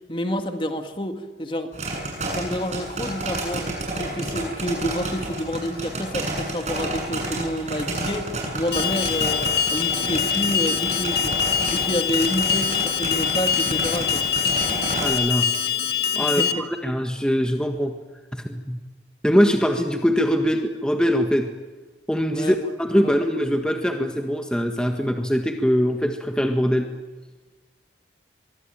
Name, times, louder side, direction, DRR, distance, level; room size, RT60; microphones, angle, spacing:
voice 1, 0.1-1.8 2.1-11.4 11.7-14.2 16.2-16.7 22.3-22.6 23.0-23.2, equal, 30° left, 6 dB, 2.0 m, -29 dB
Popcorn Machine, 1.7-15.1, right 1 dB, 40° right, 7.9 m, -30 dB
Alarm, 8.7-16.5, left 8 dB, 70° left, 1.8 m, -24 dB
voice 2, 15.0-15.5 16.1-16.4 16.8-17.9 18.3-18.8 19.2-21.5 22.1-26.9, equal, 5° left, 4 dB, 1.6 m, -22 dB
23.5 x 23.5 x 9.0 m, 1.3 s
head